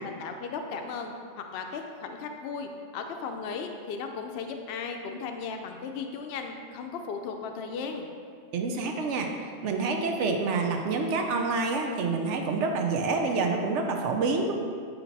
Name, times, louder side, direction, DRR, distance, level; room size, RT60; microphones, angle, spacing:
voice 1, 0.0-8.1, left 5 dB, 65° left, 4 dB, 0.7 m, -36 dB
voice 2, 8.5-9.3 9.6-14.5, right 4 dB, 75° right, 3 dB, 0.9 m, -27 dB
8.4 x 2.9 x 3.9 m, 2.1 s
omnidirectional pair, 1.2 m